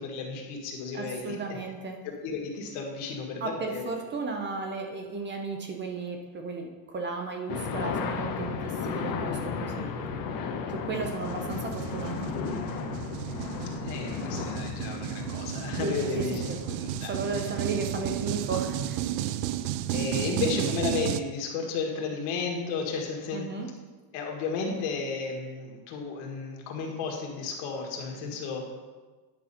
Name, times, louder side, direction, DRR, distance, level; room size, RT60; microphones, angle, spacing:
voice 1, 0.0-1.4 2.0-3.8 13.8-16.5 16.8-17.5 19.9-23.5 24.1-28.7, left 4 dB, 80° left, 1 dB, 1.8 m, -33 dB
voice 2, 0.9-2.1 3.4-10.2 10.7-12.3 15.8-16.6 17.1-19.0 23.3-23.7, right 3 dB, 25° right, 3 dB, 0.5 m, -34 dB
sound 1, 7.5-18.2, left 6 dB, 45° left, 0.7 m, -35 dB
sound 2, 10.9-21.2, right 12 dB, 75° right, 0.6 m, -33 dB
9.5 x 5.4 x 4.2 m, 1.3 s
cardioid pair, 165°, 50 cm